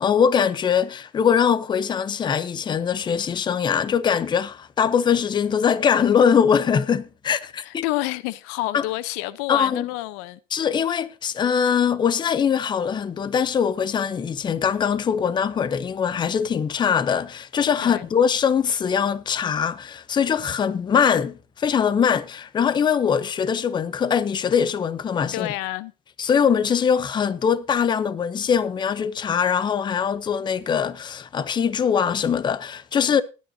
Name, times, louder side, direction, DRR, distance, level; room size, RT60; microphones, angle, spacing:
voice 1, 0.0-7.8 8.7-8.8 9.5-9.9 10.5-25.5 26.2-33.2, left 7 dB, 25° left, 0.6 m, -22 dB
voice 2, 7.6-10.4 17.8-18.1 25.3-25.9, left 17 dB, 85° left, 0.7 m, -29 dB
19.5 x 9.3 x 2.7 m
cardioid pair, 140°, 19 cm